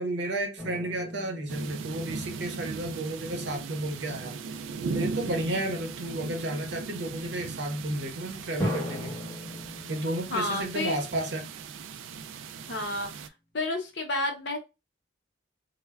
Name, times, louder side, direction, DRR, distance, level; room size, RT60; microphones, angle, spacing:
voice 1, 0.0-4.4 4.9-9.2 9.9-11.5, right 1 dB, 60° right, 0.7 m, -32 dB
sound 1, 0.6-3.7 8.6-12.2, equal, 15° left, 0.7 m, -39 dB
sound 2, 1.5-13.3, right 4 dB, 80° right, 0.3 m, -38 dB
voice 2, 10.3-11.0 12.7-13.1 13.5-14.6, left 2 dB, 60° left, 0.7 m, -30 dB
3.3 x 2.1 x 2.2 m
head